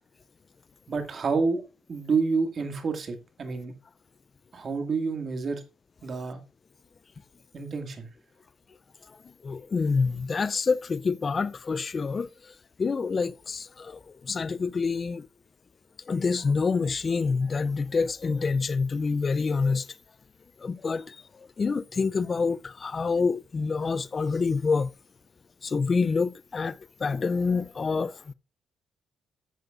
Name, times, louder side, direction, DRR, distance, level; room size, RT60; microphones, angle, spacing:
voice 1, 0.9-1.6 1.9-3.7 4.5-5.6 6.0-6.4 7.5-8.1, right 4 dB, 45° right, 2.1 m, -28 dB
voice 2, 9.4-15.3 16.1-19.9 20.6-24.9 25.6-28.3, left 4 dB, 35° left, 0.5 m, -27 dB
14.0 x 7.8 x 2.5 m
cardioid pair, 90°, 0 cm